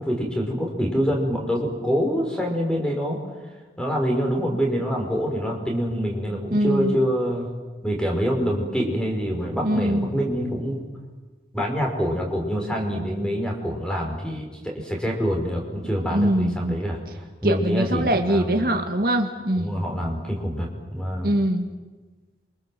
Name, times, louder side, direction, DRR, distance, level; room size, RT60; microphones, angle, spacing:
voice 1, 0.0-3.2 3.8-7.5 7.8-10.9 11.5-17.0 17.4-18.8 19.6-21.3, equal, 5° left, 1 dB, 5.0 m, -26 dB
voice 2, 6.5-7.0 9.6-10.1 16.1-16.8 17.4-19.8 21.2-21.7, right 1 dB, 55° right, 4 dB, 2.0 m, -23 dB
28.5 x 25.0 x 7.7 m, 1.3 s
head